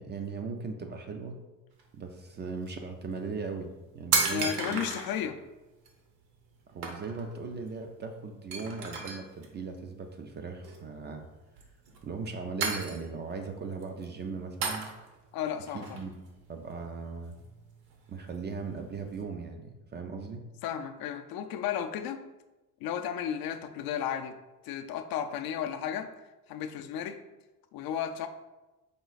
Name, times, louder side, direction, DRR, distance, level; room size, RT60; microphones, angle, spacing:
voice 1, 0.0-1.4 1.9-4.8 6.7-11.3 12.0-14.9 15.7-16.1 16.5-17.3 18.1-20.4, right 4 dB, 30° right, 5 dB, 0.4 m, -38 dB
sound 1, 1.8-1.9 2.4-2.7 3.4-3.5 3.7-5.2 5.9-6.0 6.3-6.5 6.8-7.3 7.6-7.7 8.0-8.1 8.5-9.5 10.6-11.0 11.6-12.3 12.6-13.4 13.7-14.1 14.6-15.3 15.7-17.0 17.3-19.2, right 4 dB, 65° right, 0.9 m, -34 dB
voice 2, 4.3-5.4 15.3-16.0 20.6-22.2 22.8-24.3 24.6-26.1 26.5-27.2 27.7-28.3, left 9 dB, 60° left, 7 dB, 0.5 m, -33 dB
5.0 x 2.4 x 3.9 m, 1.0 s
cardioid pair, 115°, 40 cm